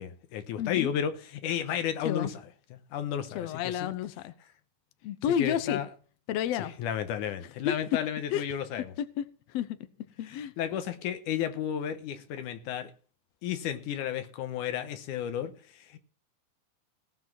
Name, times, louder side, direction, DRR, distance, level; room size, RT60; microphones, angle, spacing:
voice 1, 0.0-2.3 2.7-3.9 5.4-5.9 6.8-8.9 10.3-12.9 13.4-16.0, left 9 dB, 90° left, 2.5 m, -33 dB
voice 2, 0.6-0.9 2.0-2.3 3.4-4.3 5.0-5.8 6.3-6.7 7.7-7.8 8.3-8.4 9.0-9.8 10.2-10.5, left 9 dB, 70° left, 1.8 m, -31 dB
17.5 x 6.0 x 6.0 m
omnidirectional pair, 3.5 m